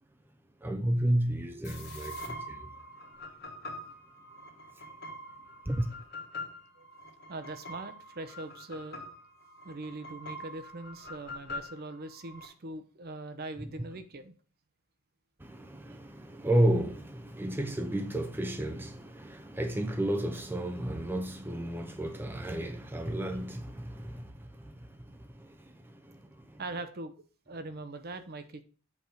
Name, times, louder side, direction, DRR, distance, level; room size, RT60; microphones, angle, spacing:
voice 1, 0.6-2.7 5.7-5.9 15.4-26.6, right 1 dB, 10° right, 0.6 m, -32 dB
sound 1, 1.6-12.5, left 1 dB, 45° left, 2.1 m, -44 dB
voice 2, 7.3-9.0 9.6-14.3 15.9-16.0 26.6-27.1 27.5-28.6, right 2 dB, 45° right, 0.7 m, -41 dB
8.0 x 3.6 x 6.4 m
head